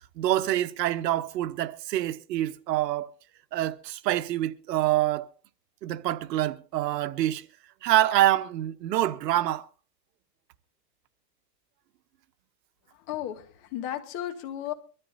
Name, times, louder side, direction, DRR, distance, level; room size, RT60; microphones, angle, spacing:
voice 1, 0.2-3.1 3.5-5.3 5.8-7.5 7.8-9.7, right 14 dB, 75° right, 1.1 m, -26 dB
voice 2, 12.9-14.7, left 11 dB, 40° left, 2.2 m, -34 dB
24.0 x 13.5 x 2.7 m
supercardioid pair, 145°, 49 cm